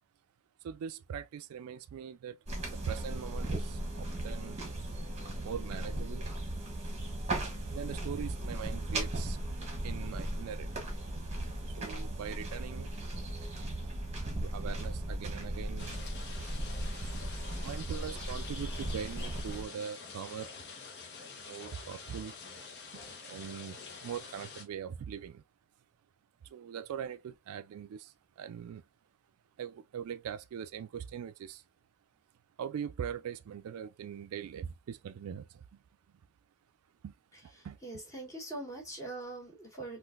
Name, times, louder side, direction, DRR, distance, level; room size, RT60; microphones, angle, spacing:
voice 1, 0.6-2.4 2.7-4.7 5.4-6.3 7.7-9.4 9.8-10.7 11.8-12.9 14.4-16.0 17.6-20.5 21.4-22.4 22.9-25.4 26.4-28.8 29.6-31.6 32.6-35.8 37.0-37.1 37.4-37.8, right 8 dB, 85° right, 0.3 m, -41 dB
sound 1, 2.5-19.6, right 1 dB, 30° right, 1.1 m, -37 dB
sound 2, 15.8-24.6, left 5 dB, 50° left, 0.8 m, -47 dB
voice 2, 37.3-40.0, right 2 dB, 15° left, 1.6 m, -43 dB
3.8 x 2.4 x 2.3 m
head